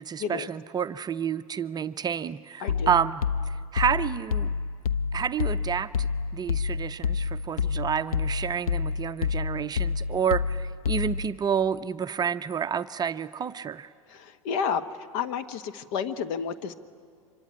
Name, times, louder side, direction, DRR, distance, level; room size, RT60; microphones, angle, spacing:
voice 1, 0.0-4.5 5.1-6.1 6.3-13.9, right 7 dB, 20° right, 11 dB, 0.6 m, -29 dB
voice 2, 2.6-2.9 14.1-14.8 15.1-16.7, left 7 dB, 55° left, 11 dB, 1.3 m, -30 dB
sound 1, 2.7-11.4, left 6 dB, 80° left, 0.7 m, -29 dB
25.5 x 23.5 x 9.6 m, 2.2 s
hypercardioid pair, 95°, 18 cm